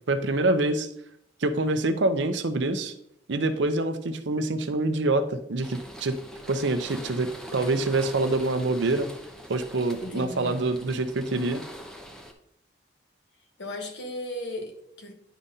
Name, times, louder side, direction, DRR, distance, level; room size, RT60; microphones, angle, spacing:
voice 1, 0.1-0.9 1.4-2.9 3.3-6.2 6.5-9.1 9.5-11.6, right 2 dB, 75° right, 9 dB, 0.6 m, -26 dB
sound 1, 5.6-12.3, equal, 5° left, 0.6 m, -43 dB
voice 2, 10.0-10.6 13.6-15.1, left 1 dB, 70° left, 4 dB, 1.2 m, -36 dB
10.0 x 5.1 x 2.7 m, 0.73 s
head